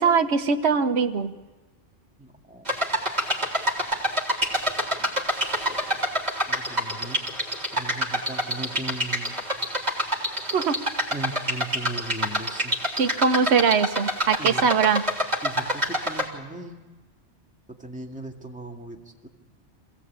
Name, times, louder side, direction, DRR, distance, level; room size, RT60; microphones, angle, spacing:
voice 1, 0.0-1.3 10.5-10.8 13.0-15.0, right 6 dB, 65° right, 7 dB, 1.3 m, -21 dB
voice 2, 2.2-2.7 5.0-5.1 5.7-6.0 6.5-7.2 7.7-9.4 11.1-12.8 14.4-14.6 15.4-16.8 17.7-19.3, right 2 dB, 5° right, 1 dB, 2.1 m, -38 dB
sound 1, 2.7-16.3, equal, 35° right, 3.4 m, -27 dB
26.5 x 17.0 x 8.7 m, 1.3 s
omnidirectional pair, 1.2 m